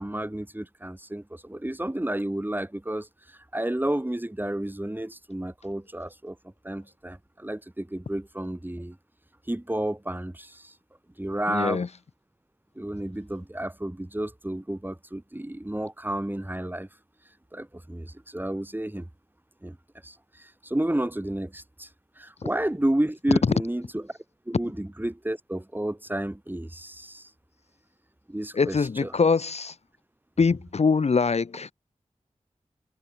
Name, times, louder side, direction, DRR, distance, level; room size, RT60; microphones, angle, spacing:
voice 1, 0.0-6.4 6.6-9.0 9.5-10.7 11.2-11.8 12.8-16.9 17.5-19.1 19.6-19.8 20.0-21.9 22.2-24.0 24.5-27.3 28.3-29.1, right 1 dB, 15° right, 2.6 m, -31 dB
voice 2, 11.5-11.9 23.3-23.5 28.5-29.7 30.4-31.7, left 5 dB, 65° left, 0.7 m, -23 dB
wide cardioid pair, 55°, 12 cm